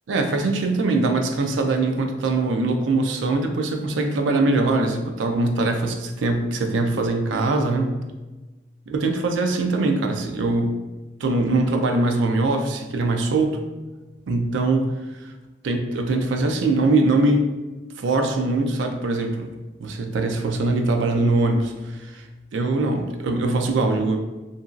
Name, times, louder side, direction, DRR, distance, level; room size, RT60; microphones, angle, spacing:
voice 1, 0.1-8.0 8.9-10.8 11.2-13.6 14.3-14.9 15.2-15.3 15.6-17.5 18.0-19.5 19.8-22.2 22.5-24.2, right 2 dB, 85° right, 4 dB, 0.4 m, -22 dB
2.9 x 2.6 x 2.4 m, 1.2 s
head